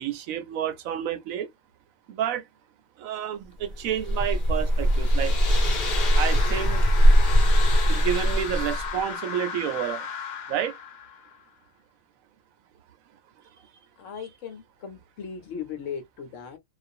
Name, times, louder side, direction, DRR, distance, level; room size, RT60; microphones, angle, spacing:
voice 1, 0.0-1.5 2.1-2.5 3.0-5.3 6.1-6.9 7.9-10.1 10.5-10.8, right 10 dB, 75° right, 1.0 m, -30 dB
sound 1, 3.6-9.0, equal, 45° left, 0.9 m, -21 dB
sound 2, 4.4-11.5, left 7 dB, 85° left, 0.4 m, -36 dB
voice 2, 14.0-16.6, left 7 dB, 65° left, 1.0 m, -37 dB
2.4 x 2.4 x 2.6 m
omnidirectional pair, 1.5 m